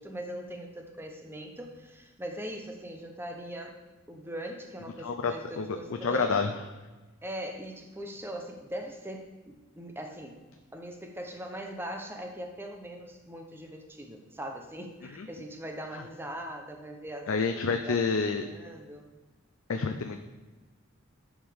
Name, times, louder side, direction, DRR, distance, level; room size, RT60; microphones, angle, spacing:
voice 1, 0.0-3.8 4.1-6.5 7.2-10.4 10.7-17.3 17.7-19.0, right 1 dB, 10° right, 3 dB, 0.8 m, -40 dB
voice 2, 5.0-6.5 15.2-15.3 15.9-16.0 17.3-18.5 19.7-20.2, left 4 dB, 75° left, 5 dB, 0.5 m, -29 dB
10.5 x 4.8 x 3.5 m, 1.2 s
head